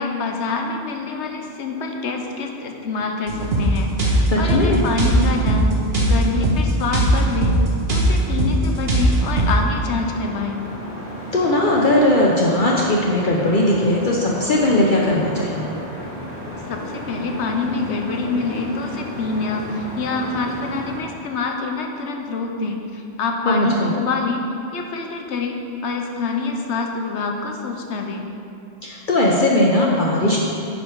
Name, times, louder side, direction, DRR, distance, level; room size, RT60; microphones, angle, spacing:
voice 1, 0.0-7.5 7.9-10.6 16.7-24.4 24.7-25.6 25.8-28.3, left 3 dB, 85° left, 3 dB, 1.1 m, -26 dB
sound 1, 3.3-9.6, right 1 dB, 65° right, 1.4 m, -19 dB
voice 2, 4.3-4.8 11.3-15.7 23.5-23.9 28.8-30.4, left 1 dB, 50° left, -3 dB, 0.8 m, -18 dB
sound 2, 8.4-21.0, equal, 35° right, 1.9 m, -34 dB
9.3 x 5.2 x 4.7 m, 2.6 s
omnidirectional pair, 1.1 m